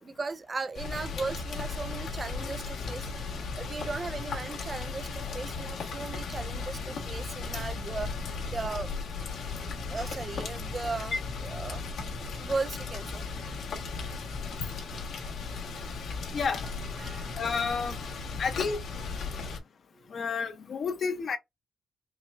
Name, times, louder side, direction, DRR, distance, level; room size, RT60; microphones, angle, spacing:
voice 1, 0.0-8.1 8.5-9.1 9.9-11.2 11.4-11.9 12.4-13.2 17.0-17.4 20.0-20.1, right 4 dB, 30° right, 0.3 m, -37 dB
Rain, 0.7-19.6, left 4 dB, 80° left, 1.5 m, -36 dB
voice 2, 17.4-18.0 18.4-18.8 20.1-21.4, left 5 dB, 50° left, 0.8 m, -30 dB
5.8 x 2.3 x 2.5 m
cardioid pair, 120°, 0 cm